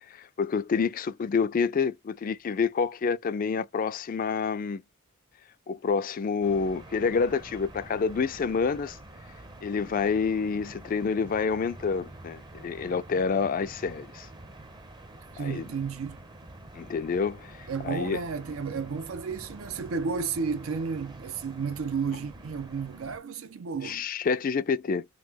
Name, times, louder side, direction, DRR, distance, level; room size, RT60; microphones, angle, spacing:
voice 1, 0.1-4.8 5.7-9.0 9.6-14.3 15.4-15.7 16.7-18.2 23.8-25.1, left 5 dB, 40° left, 0.4 m, -28 dB
sound 1, 6.4-23.2, right 2 dB, 20° right, 0.6 m, -47 dB
voice 2, 15.3-16.2 17.7-24.0, right 5 dB, 85° right, 0.5 m, -32 dB
3.1 x 2.0 x 3.4 m
head